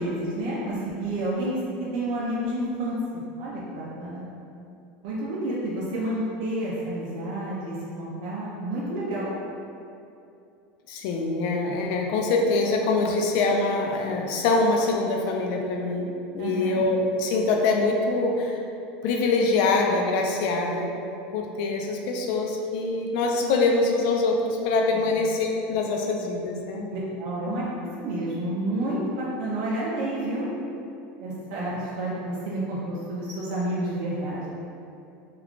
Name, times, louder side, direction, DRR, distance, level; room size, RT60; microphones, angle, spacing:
voice 1, 0.0-1.6 1.9-4.2 5.0-9.3 16.4-16.8 24.9-25.1 26.9-30.5 31.2-34.5, right 1 dB, 60° right, -7 dB, 0.5 m, -30 dB
voice 2, 10.9-16.1 16.3-18.6 19.0-20.9 21.3-26.9 27.5-27.6, left 3 dB, 60° left, 1 dB, 0.4 m, -24 dB
2.3 x 2.3 x 3.6 m, 2.7 s
supercardioid pair, 150°, 5 cm